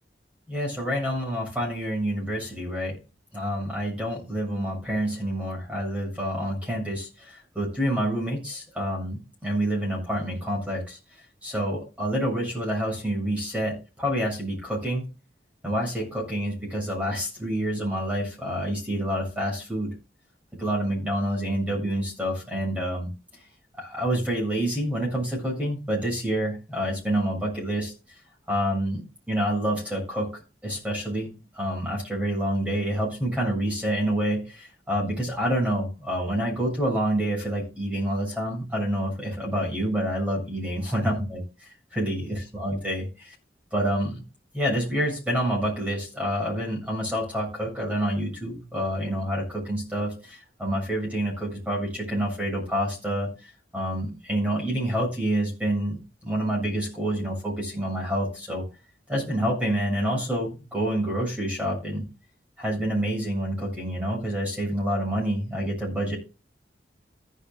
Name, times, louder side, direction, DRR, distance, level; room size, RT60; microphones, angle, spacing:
voice 1, 0.5-3.0 3.3-11.0 11.4-15.0 15.6-19.9 20.6-23.1 23.8-27.9 28.5-29.0 29.3-30.3 30.6-31.3 31.5-41.4 41.9-43.3 43.7-44.2 44.5-53.3 53.7-56.0 56.2-58.6 59.1-62.1 62.6-66.2, equal, 10° right, -2 dB, 7.1 m, -27 dB
15.5 x 11.0 x 2.5 m, 0.30 s
head